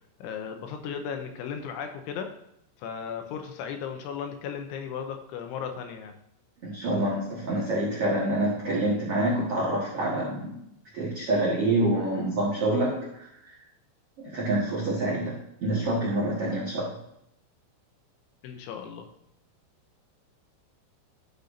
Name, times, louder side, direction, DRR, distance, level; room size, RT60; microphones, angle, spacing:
voice 1, 0.2-2.3 2.8-6.1 18.4-19.1, left 7 dB, 80° left, 5 dB, 3.3 m, -36 dB
voice 2, 6.6-10.6 10.9-13.2 14.2-17.0, right 1 dB, 80° right, -5 dB, 1.3 m, -27 dB
12.5 x 6.7 x 2.6 m, 0.76 s
omnidirectional pair, 5.4 m